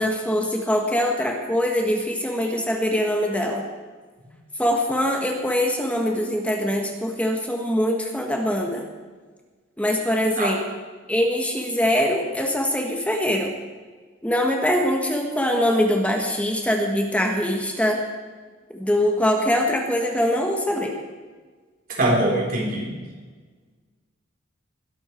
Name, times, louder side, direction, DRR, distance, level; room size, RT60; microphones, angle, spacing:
voice 1, 0.0-3.6 4.6-8.9 9.8-10.6 11.1-13.5 14.2-18.0 18.7-20.9, equal, 5° left, 1 dB, 1.6 m, -23 dB
voice 2, 22.0-22.9, right 1 dB, 45° right, -2 dB, 3.9 m, -22 dB
21.0 x 11.5 x 4.6 m, 1.4 s
head